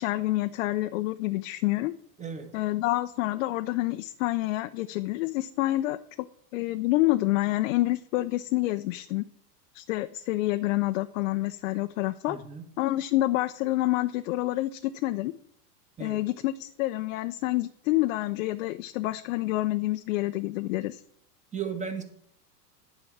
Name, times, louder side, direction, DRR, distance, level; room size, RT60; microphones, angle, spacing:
voice 1, 0.0-1.9 2.5-6.3 6.5-9.2 9.7-12.4 12.8-15.3 16.0-21.0, left 17 dB, 55° left, 9 dB, 0.5 m, -28 dB
voice 2, 2.2-2.5 12.3-12.6 16.0-16.2 21.5-22.0, right 6 dB, 15° right, 6 dB, 1.4 m, -35 dB
9.8 x 4.9 x 7.1 m, 0.71 s
hypercardioid pair, 115°, 48 cm